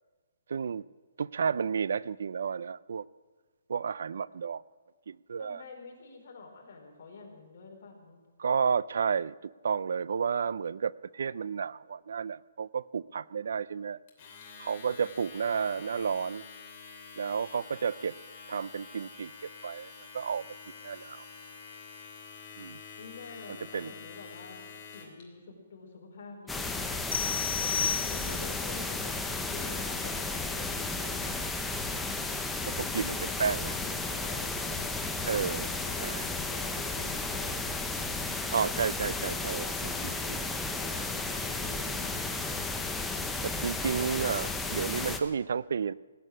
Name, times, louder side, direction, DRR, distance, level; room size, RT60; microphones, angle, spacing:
voice 1, 0.5-0.8 1.2-3.0 3.7-4.6 5.1-5.6 8.4-14.0 14.6-16.5 17.2-18.1 18.5-19.3 19.6-20.4 20.8-21.2 22.6-22.8 23.7-23.9 27.7-27.9 32.6-33.7 35.2-35.7 36.0-36.2 38.5-40.4 40.8-41.0 43.4-45.9, right 6 dB, 70° right, 21 dB, 0.4 m, -32 dB
voice 2, 5.4-8.2 23.0-27.0 28.1-31.5 32.9-35.0 35.4-38.9 40.9-42.2, left 4 dB, 50° left, -1 dB, 4.7 m, -48 dB
Domestic sounds home sounds, 14.1-25.2, left 5 dB, 30° left, 2.9 m, -48 dB
sound 1, 26.5-45.2, left 3 dB, 5° left, 0.7 m, -33 dB
sound 2, 27.1-28.6, left 7 dB, 70° left, 0.4 m, -31 dB
18.5 x 8.6 x 8.8 m, 1.4 s
hypercardioid pair, 165°, 0 cm